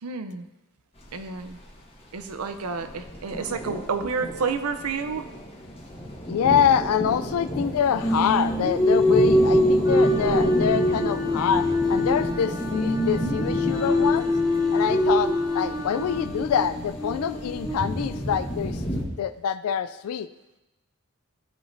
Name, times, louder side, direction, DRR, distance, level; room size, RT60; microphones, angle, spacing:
voice 1, 0.0-0.5 1.1-1.6 2.1-5.3, right 5 dB, 90° right, 9 dB, 0.6 m, -30 dB
sound 1, 1.0-19.0, equal, 25° left, 1.4 m, -32 dB
voice 2, 6.3-14.3 14.7-18.8 19.2-20.3, left 8 dB, 85° left, 13 dB, 0.3 m, -25 dB
Singing, 8.0-12.3 12.6-18.6, left 1 dB, 10° left, 1.7 m, -24 dB
Wind instrument woodwind instrument, 9.8-16.3, equal, 15° right, 0.7 m, -39 dB
13.5 x 5.1 x 2.6 m, 0.98 s
head